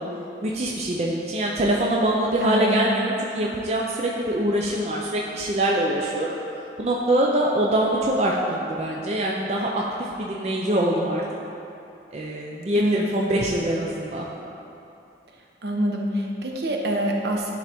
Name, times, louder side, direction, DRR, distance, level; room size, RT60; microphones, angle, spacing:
voice 1, 0.4-6.4 6.8-9.8 10.2-11.2 12.1-14.3, right 1 dB, 35° right, -2 dB, 0.4 m, -24 dB
voice 2, 2.4-2.8 12.8-13.1 15.6-17.5, right 1 dB, 65° right, 0 dB, 0.7 m, -25 dB
10.0 x 3.9 x 3.5 m, 2.7 s
head